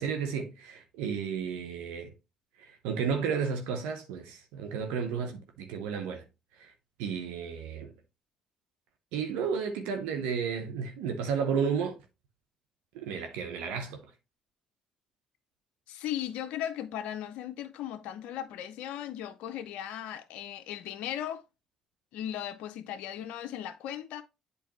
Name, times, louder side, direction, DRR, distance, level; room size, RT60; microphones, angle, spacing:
voice 1, 0.0-2.1 2.6-6.2 6.6-6.7 7.0-7.9 9.1-12.0 12.9-14.1, right 6 dB, 80° right, 0.9 m, -32 dB
voice 2, 15.9-21.4 22.1-24.2, left 11 dB, 75° left, 0.5 m, -37 dB
8.0 x 4.1 x 3.0 m
hypercardioid pair, 60°, 2 cm